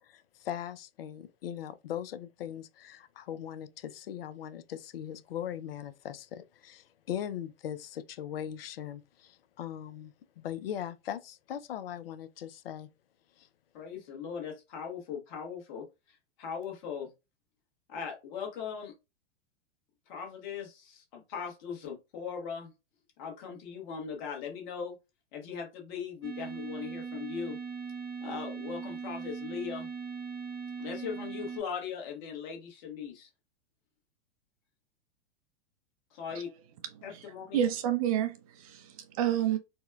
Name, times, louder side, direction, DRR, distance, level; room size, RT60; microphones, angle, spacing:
voice 1, 0.1-12.9 13.4-13.5, left 10 dB, 60° left, 0.5 m, -40 dB
voice 2, 13.7-17.1 17.9-18.9 20.1-22.7 23.2-25.0 25.3-27.6 28.2-29.9 30.8-33.3 36.1-36.5 37.0-37.6, left 7 dB, 45° left, 1.2 m, -39 dB
sound 1, 26.2-31.6, right 5 dB, 85° right, 1.5 m, -39 dB
voice 3, 37.5-39.6, right 10 dB, 35° right, 0.4 m, -29 dB
4.2 x 2.1 x 2.3 m
figure-of-eight pair, 105°, 33 cm